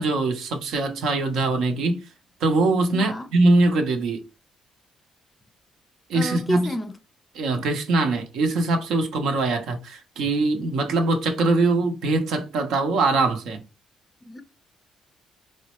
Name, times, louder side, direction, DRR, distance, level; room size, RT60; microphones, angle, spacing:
voice 1, 0.0-2.0 2.4-4.2 6.1-6.7 7.3-13.6, right 2 dB, 85° right, 0.8 m, -22 dB
voice 2, 2.9-3.3 6.1-6.9 14.2-14.4, equal, 20° left, 0.5 m, -29 dB
4.0 x 2.1 x 2.9 m
cardioid pair, 90°, 0 cm